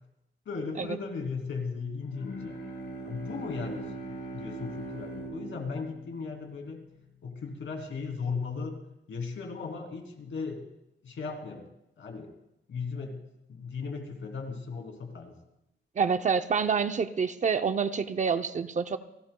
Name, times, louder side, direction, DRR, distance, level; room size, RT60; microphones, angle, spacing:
voice 1, 0.4-2.6 3.0-3.9 4.3-6.8 7.2-8.8 9.1-10.7 11.0-11.7 12.0-12.3 12.7-13.2 13.5-15.3, left 4 dB, 90° left, 3 dB, 3.0 m, -36 dB
Bowed string instrument, 2.0-7.4, right 2 dB, 70° left, 4.0 m, -41 dB
voice 2, 16.0-19.0, right 6 dB, 40° right, 9 dB, 0.6 m, -27 dB
29.0 x 18.0 x 2.3 m, 0.84 s
wide cardioid pair, 175°, 19 cm